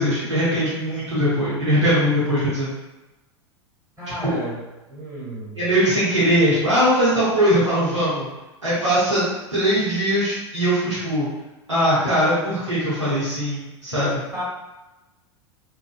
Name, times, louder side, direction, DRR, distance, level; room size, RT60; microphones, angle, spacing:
voice 1, 0.0-2.7 4.2-4.4 5.5-8.3 8.6-9.2 9.5-11.3 11.7-14.2, equal, 85° right, -11 dB, 0.9 m, -20 dB
voice 2, 4.0-4.6 4.9-5.7 14.3-14.4, right 1 dB, 20° right, -9 dB, 0.9 m, -32 dB
2.6 x 2.2 x 2.3 m, 1.1 s
figure-of-eight pair, 85°, 15 cm